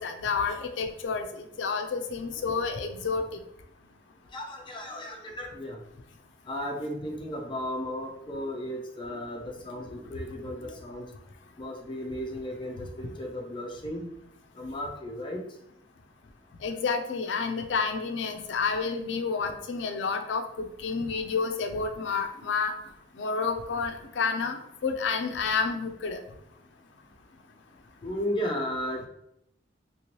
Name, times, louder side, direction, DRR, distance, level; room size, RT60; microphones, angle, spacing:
voice 1, 0.0-3.2 16.6-22.7 23.2-26.2, left 5 dB, 75° left, 5 dB, 0.4 m, -30 dB
voice 2, 4.3-5.8 6.5-11.1 11.6-14.1 14.5-15.4 28.0-29.1, equal, 25° left, 0 dB, 0.6 m, -35 dB
3.0 x 3.0 x 2.9 m, 0.79 s
head